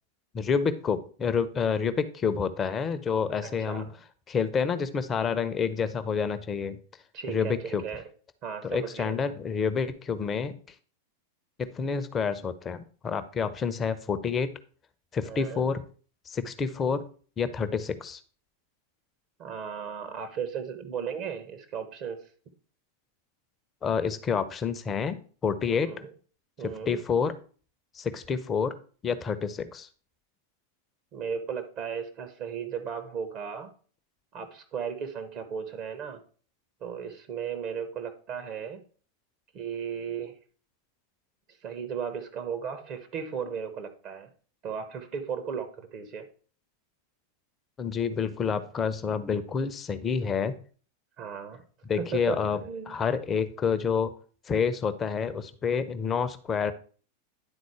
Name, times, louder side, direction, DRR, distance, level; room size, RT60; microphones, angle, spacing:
voice 1, 0.3-3.9 4.3-6.8 7.3-7.8 8.6-10.5 11.6-14.5 15.1-15.8 16.3-17.0 17.4-18.2 23.8-25.9 26.6-27.3 27.9-28.7 29.0-29.9 47.8-50.6 51.9-52.6 52.9-54.1 54.5-56.7, left 6 dB, 20° left, 12 dB, 0.7 m, -28 dB
voice 2, 3.4-3.9 7.1-8.1 8.4-9.2 15.2-15.7 19.4-22.2 25.7-26.1 26.6-27.0 31.1-33.7 34.3-36.2 36.8-38.8 39.5-40.4 41.6-44.3 44.6-46.3 51.2-51.6 52.0-53.0, right 7 dB, 40° right, 7 dB, 1.0 m, -36 dB
9.9 x 4.0 x 4.7 m, 0.41 s
figure-of-eight pair, 90°, 0 cm